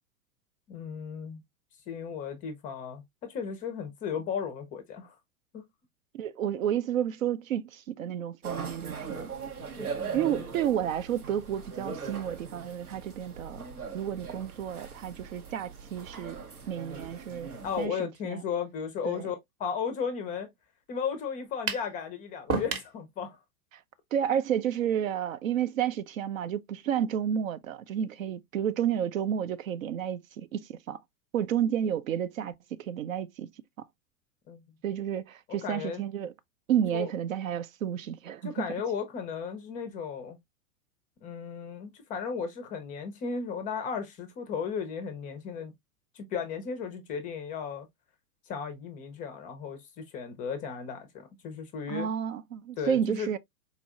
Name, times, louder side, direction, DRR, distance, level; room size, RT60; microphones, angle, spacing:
voice 1, 0.7-1.4 1.9-5.2 5.5-5.6 10.0-10.6 17.6-20.5 20.9-23.4 34.5-34.6 35.6-36.0 36.9-37.1 38.4-40.4 41.2-45.7 46.1-47.9 48.5-52.1 52.8-53.3, left 6 dB, 20° left, 0.4 m, -35 dB
voice 2, 6.1-9.3 10.1-13.6 13.9-16.4 16.7-17.5 17.8-18.0 18.2-18.4 19.0-19.3 24.1-31.0 31.3-33.5 33.8-33.9 34.8-36.3 36.7-38.7 51.9-53.4, right 9 dB, 65° right, 0.5 m, -31 dB
sound 1, 8.4-17.9, right 5 dB, 85° right, 0.8 m, -40 dB
sound 2, 21.7-21.9 22.5-22.9, right 4 dB, 30° right, 0.8 m, -30 dB
4.2 x 2.6 x 2.4 m
figure-of-eight pair, 95°, 43 cm